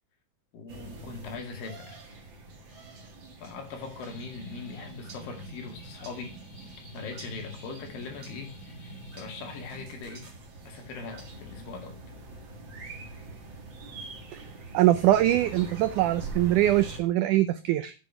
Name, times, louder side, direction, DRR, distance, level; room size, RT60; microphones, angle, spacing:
voice 1, 0.5-2.0 3.4-6.4 6.9-10.3 10.7-12.0, left 4 dB, 70° left, 3.7 m, -41 dB
sound 1, 0.7-17.0, right 2 dB, 40° right, 1.9 m, -44 dB
sound 2, 4.0-9.8, right 1 dB, 20° left, 2.4 m, -46 dB
voice 2, 14.7-17.9, right 14 dB, 85° right, 1.7 m, -23 dB
7.4 x 6.9 x 6.0 m
omnidirectional pair, 4.2 m